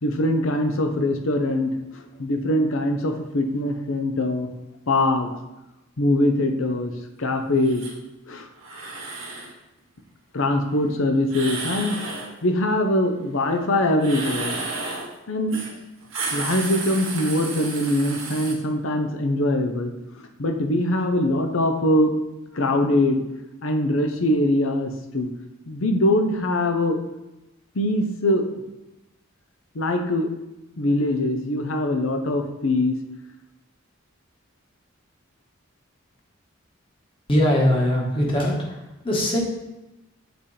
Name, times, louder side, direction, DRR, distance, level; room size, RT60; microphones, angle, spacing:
voice 1, 0.0-1.7 2.2-4.5 4.9-5.3 6.0-6.9 7.2-7.8 8.3-8.5 10.3-12.0 12.4-14.6 15.3-15.6 16.3-19.9 20.4-22.1 22.5-23.2 23.6-25.3 25.7-27.0 27.7-28.6 29.7-30.3 30.8-32.9, left 1 dB, 75° left, 5 dB, 0.7 m, -22 dB
sound 1, 7.6-7.9 8.6-9.5 11.3-12.3 14.0-15.1 15.5-15.7 16.0-18.5, right 3 dB, 85° right, 1.4 m, -32 dB
voice 2, 37.3-38.8 39.0-39.4, left 1 dB, 25° left, -3 dB, 1.3 m, -21 dB
7.9 x 4.2 x 3.3 m, 0.97 s
head